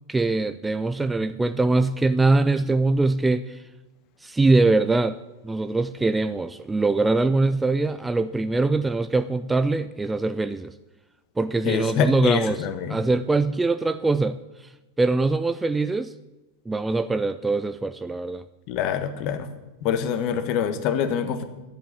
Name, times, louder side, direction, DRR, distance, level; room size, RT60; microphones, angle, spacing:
voice 1, 0.1-3.6 4.2-5.2 5.4-10.7 11.4-14.7 15.0-16.1 16.7-18.4, right 3 dB, 10° right, 12 dB, 0.4 m, -23 dB
voice 2, 11.6-13.0 18.7-19.5 19.8-21.4, left 8 dB, 40° left, 9 dB, 1.3 m, -25 dB
11.5 x 8.3 x 8.1 m, 1.1 s
figure-of-eight pair, 90°, 0 cm